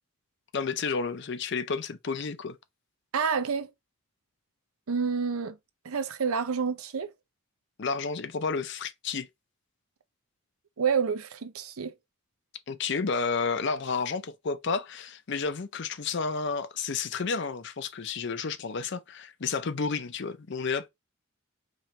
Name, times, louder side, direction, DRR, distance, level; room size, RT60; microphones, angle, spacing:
voice 1, 0.5-2.6 7.8-9.3 12.7-20.9, left 5 dB, 55° left, 0.5 m, -31 dB
voice 2, 3.1-3.7 4.9-5.6 5.8-7.1 10.8-11.9, right 6 dB, 85° right, 0.7 m, -28 dB
4.5 x 3.1 x 2.8 m
head